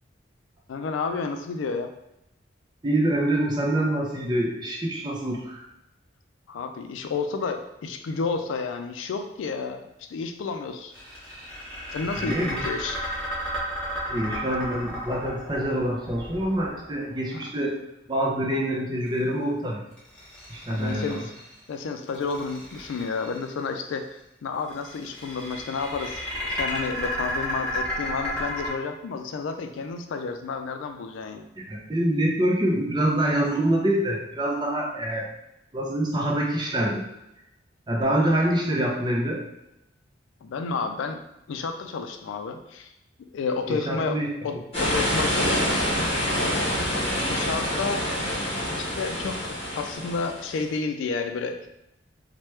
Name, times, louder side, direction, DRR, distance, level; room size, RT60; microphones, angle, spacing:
voice 1, 0.7-1.9 6.5-10.9 11.9-13.0 17.3-17.5 20.7-21.2 21.7-31.5 40.4-41.2 41.5-42.9 43.3-45.8 46.8-48.2 48.8-51.7, left 4 dB, 90° left, 6 dB, 0.3 m, -31 dB
voice 2, 2.8-5.6 12.2-12.6 14.1-17.8 18.1-19.8 20.5-21.2 31.7-35.3 35.7-37.0 37.9-39.4 43.7-44.3, right 1 dB, 25° right, -1 dB, 0.5 m, -25 dB
sound 1, 10.9-17.1 20.0-21.5 22.1-23.4 24.7-28.7, equal, 5° left, 0.9 m, -33 dB
sound 2, 44.7-50.6, equal, 30° left, 1.1 m, -26 dB
3.1 x 2.1 x 3.1 m, 0.86 s
head